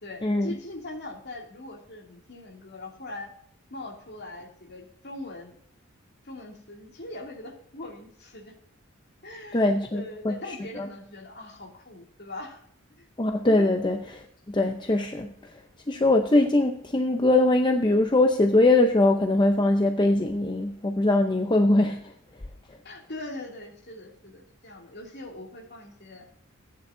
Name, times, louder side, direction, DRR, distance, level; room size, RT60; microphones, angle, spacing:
voice 1, 0.0-3.3 3.7-5.6 6.2-8.5 9.2-12.6 13.0-13.1 13.7-13.8 22.8-26.3, left 2 dB, 50° left, 0 dB, 2.7 m, -41 dB
voice 2, 9.5-10.3 10.7-10.9 13.2-14.2 14.5-15.3 15.9-22.0, left 2 dB, 20° left, 4 dB, 0.6 m, -22 dB
15.0 x 9.6 x 2.7 m, 0.67 s
head